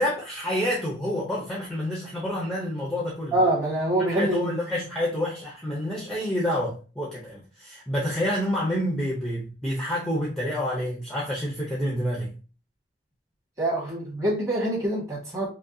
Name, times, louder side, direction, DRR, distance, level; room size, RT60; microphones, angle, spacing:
voice 1, 0.0-3.3 4.1-12.3, equal, ahead, 0.7 m, -28 dB
voice 2, 3.3-4.5 13.6-15.5, right 1 dB, 20° right, 1.8 m, -25 dB
5.0 x 2.3 x 2.7 m
head